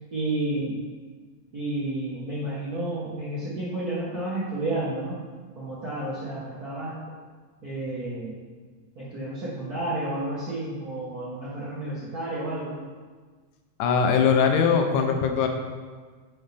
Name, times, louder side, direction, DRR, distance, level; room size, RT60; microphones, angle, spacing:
voice 1, 0.1-0.8 1.5-5.2 5.5-7.0 7.6-8.3 8.9-12.8, right 1 dB, 55° right, -9 dB, 1.1 m, -31 dB
voice 2, 13.8-15.5, left 6 dB, 85° left, 4 dB, 2.2 m, -21 dB
9.6 x 5.5 x 3.4 m, 1.5 s
omnidirectional pair, 3.5 m